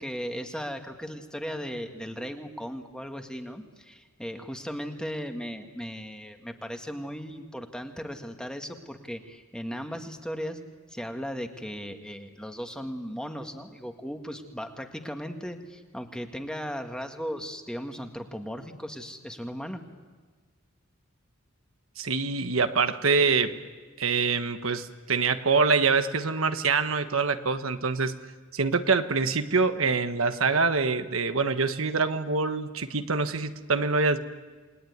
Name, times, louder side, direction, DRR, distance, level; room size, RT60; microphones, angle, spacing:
voice 1, 0.0-10.6 10.9-19.8, equal, 5° left, 5 dB, 1.7 m, -37 dB
voice 2, 22.0-23.5 24.0-28.1 28.5-34.2, right 4 dB, 85° right, 9 dB, 1.3 m, -25 dB
28.5 x 20.0 x 9.5 m, 1.4 s
head